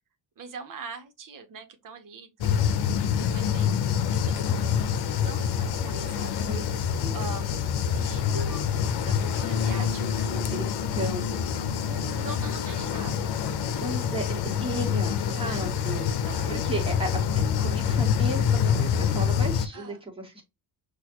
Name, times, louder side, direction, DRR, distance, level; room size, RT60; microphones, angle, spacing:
voice 1, 0.4-2.9 3.3-3.7 4.1-4.9 5.2-6.4 7.1-8.6 9.0-10.3 12.2-13.3 15.4-15.6 16.2-16.6 19.7-20.0, right 4 dB, 55° right, 1.2 m, -42 dB
sound 1, 2.4-19.7, left 8 dB, 80° left, 0.8 m, -26 dB
voice 2, 7.0-7.5 9.8-12.3 13.8-17.3 17.6-20.4, right 2 dB, 15° right, 1.7 m, -35 dB
Bass guitar, 9.4-15.7, left 5 dB, 40° left, 0.7 m, -37 dB
6.2 x 2.6 x 3.0 m
cardioid pair, 115°, 39 cm